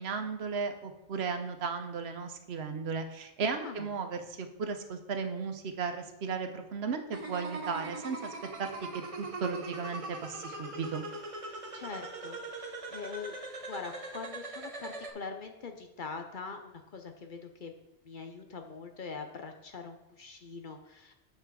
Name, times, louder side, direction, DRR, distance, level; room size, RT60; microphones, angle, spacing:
voice 1, 0.0-8.3 8.6-8.7 9.2-11.0, right 5 dB, 65° right, 7 dB, 1.0 m, -35 dB
sound 1, 7.1-15.1, right 3 dB, 35° right, 0.7 m, -41 dB
voice 2, 11.7-13.4 13.7-17.7 18.0-21.1, left 5 dB, 50° left, 5 dB, 0.7 m, -43 dB
6.8 x 5.8 x 4.6 m, 0.91 s
omnidirectional pair, 1.2 m